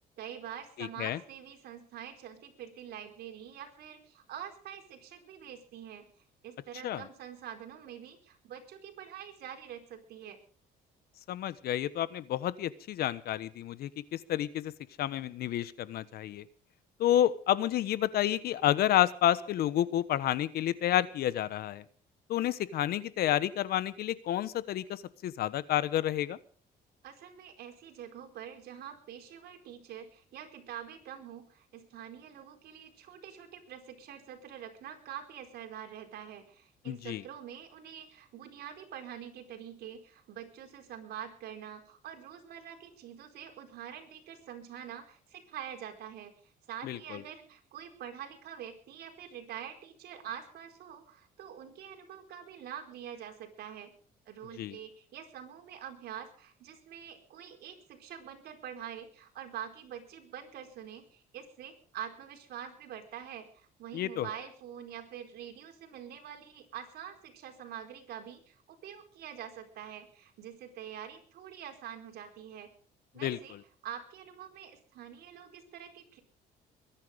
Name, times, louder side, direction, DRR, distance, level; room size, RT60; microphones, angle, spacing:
voice 1, 0.2-10.4 27.0-53.9 54.3-72.7 73.1-73.6 73.8-76.2, right 9 dB, 70° right, 4 dB, 4.5 m, -45 dB
voice 2, 0.8-1.2 6.8-7.0 11.3-14.7 15.0-16.4 17.0-21.8 22.3-26.4 36.9-37.2 46.8-47.2 54.6-54.8 63.9-64.3 73.2-73.4, left 12 dB, 65° left, 16 dB, 1.1 m, -30 dB
22.5 x 10.5 x 5.2 m, 0.43 s
cardioid pair, 110°, 17 cm